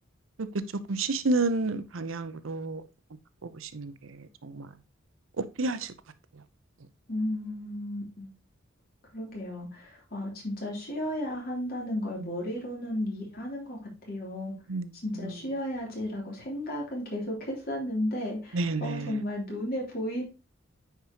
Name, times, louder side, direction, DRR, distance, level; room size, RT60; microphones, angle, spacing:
voice 1, 0.9-2.8 3.4-3.9 4.4-4.7 5.6-5.9 14.7-14.9 18.5-19.1, right 3 dB, 90° right, 0.7 m, -29 dB
voice 2, 7.1-8.3 9.1-14.5 15.0-20.2, left 1 dB, 50° left, 3.2 m, -34 dB
9.3 x 4.7 x 2.9 m
head